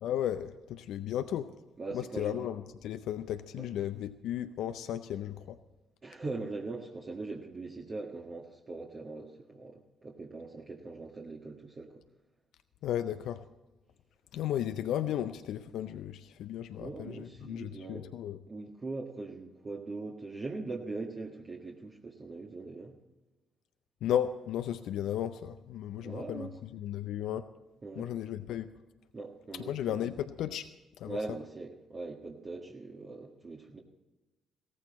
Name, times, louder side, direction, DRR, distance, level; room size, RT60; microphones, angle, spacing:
voice 1, 0.0-1.5 1.9-5.6 12.8-13.4 14.3-18.4 24.0-27.5 28.0-28.7 29.5-30.7 31.0-31.4, left 11 dB, 70° left, 10 dB, 0.5 m, -35 dB
voice 2, 1.8-2.3 3.6-3.7 6.0-12.0 16.8-18.1 18.5-23.0 25.9-26.5 27.8-28.1 29.1-30.0 31.1-33.8, right 3 dB, 40° right, -2 dB, 1.6 m, -41 dB
16.5 x 15.0 x 4.2 m, 1.1 s
hypercardioid pair, 45°, 0 cm